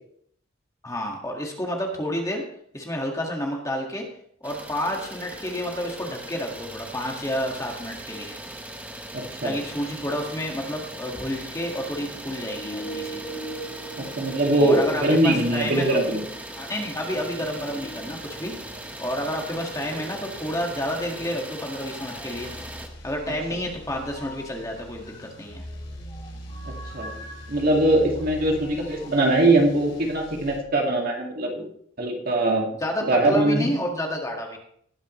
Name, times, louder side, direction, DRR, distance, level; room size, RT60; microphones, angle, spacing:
voice 1, 0.8-2.4 2.7-4.1 4.4-8.4 9.4-13.2 14.6-16.0 16.6-18.5 19.0-22.5 23.0-25.6 32.8-34.6, equal, 15° left, 0 dB, 1.8 m, -30 dB
Idling, 4.4-22.9, right 1 dB, 10° right, 1.0 m, -39 dB
voice 2, 9.1-9.5 14.0-16.2 26.7-27.1 27.5-31.7 32.0-32.7 33.0-33.7, right 1 dB, 50° right, 0 dB, 2.2 m, -22 dB
sound 1, 11.9-19.0 19.6-29.1, right 1 dB, 35° left, 3.1 m, -43 dB
sound 2, 22.3-30.6, equal, 70° left, 3.2 m, -42 dB
19.0 x 7.3 x 3.1 m, 0.66 s
head